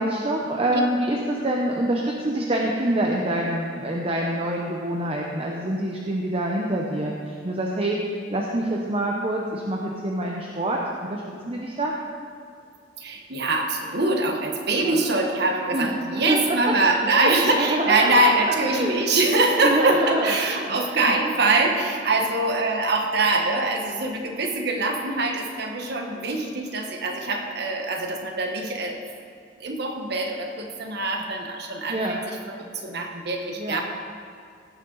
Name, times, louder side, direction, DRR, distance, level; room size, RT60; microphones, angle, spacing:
voice 1, 0.0-10.8 11.1-11.9 14.8-15.0 15.7-16.4 17.0-18.3 18.7-19.0 19.6-21.2 26.2-26.6 31.0-31.2 31.9-32.2 33.6-33.8, right 1 dB, 30° right, -1 dB, 0.8 m, -26 dB
voice 2, 13.0-29.0 29.6-33.8, right 2 dB, 60° right, 3 dB, 1.2 m, -24 dB
17.0 x 6.6 x 4.0 m, 2.3 s
head